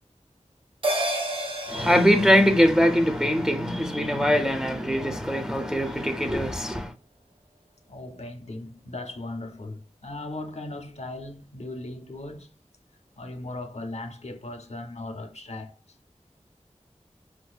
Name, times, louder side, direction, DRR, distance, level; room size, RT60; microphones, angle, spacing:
sound 1, 0.8-5.5 5.9-6.0, right 1 dB, 45° right, 0.7 m, -33 dB
voice 1, 1.7-6.9, equal, 5° right, 0.4 m, -22 dB
voice 2, 7.9-12.5 13.2-15.8, left 2 dB, 60° left, 0.5 m, -38 dB
4.4 x 2.3 x 2.3 m
wide cardioid pair, 45°, 12 cm